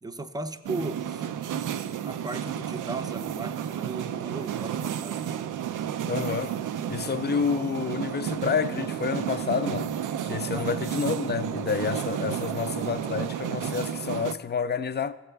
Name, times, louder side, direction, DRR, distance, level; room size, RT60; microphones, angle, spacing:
voice 1, 0.0-1.3 2.1-5.3 10.4-10.7, right 2 dB, 10° right, 0.6 m, -36 dB
sound 1, 0.6-14.3, right 9 dB, 70° right, 0.4 m, -32 dB
voice 2, 6.1-6.6 6.9-9.9 10.2-15.1, left 6 dB, 30° left, 0.4 m, -29 dB
15.0 x 7.1 x 3.3 m
cardioid pair, 70°, 33 cm